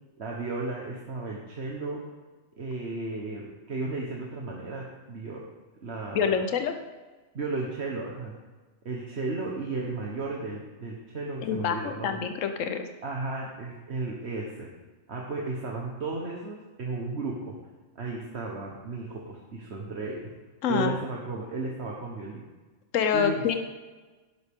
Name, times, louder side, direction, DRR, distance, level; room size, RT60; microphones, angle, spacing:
voice 1, 0.2-2.0 2.6-5.5 5.8-6.4 7.3-8.3 8.8-12.2 13.0-14.7 15.1-17.6 17.9-20.3 20.7-22.5 23.1-23.4, right 3 dB, 55° right, -2 dB, 1.5 m, -34 dB
voice 2, 6.1-6.7 11.4-12.9 20.6-21.0 22.9-23.5, left 7 dB, 80° left, 7 dB, 1.2 m, -26 dB
11.5 x 11.5 x 3.7 m, 1.3 s
omnidirectional pair, 1.3 m